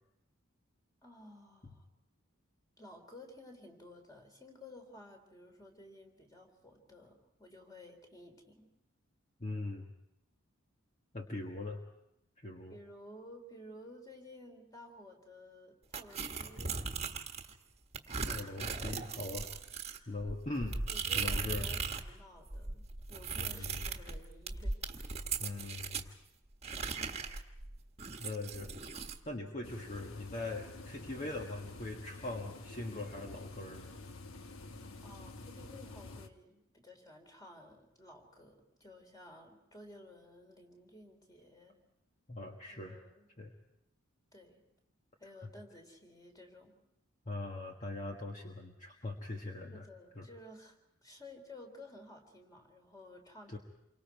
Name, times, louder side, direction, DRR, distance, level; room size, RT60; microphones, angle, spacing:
voice 1, 1.0-1.8 2.8-8.7 12.7-17.2 20.1-20.4 20.9-25.2 35.0-41.8 42.7-43.3 44.3-44.6 45.2-46.7 49.7-50.8 51.0-53.6, left 1 dB, 20° left, 3 dB, 3.7 m, -54 dB
voice 2, 9.4-9.9 11.1-11.8 12.4-12.8 18.2-19.5 20.1-20.8 21.1-21.7 23.4-23.8 25.4-26.1 28.2-28.7 29.2-33.9 42.3-43.0 43.4-43.5 45.4-45.5 47.3-49.8 50.1-50.3 53.5-53.6, left 2 dB, 35° left, 1 dB, 1.6 m, -41 dB
sound 1, 15.9-17.5 17.9-22.1 22.4-26.1 26.6-29.2, right 4 dB, 30° right, 1.5 m, -38 dB
sound 2, 29.6-36.3, left 2 dB, 80° left, 1.2 m, -49 dB
28.5 x 24.0 x 4.7 m, 0.82 s
head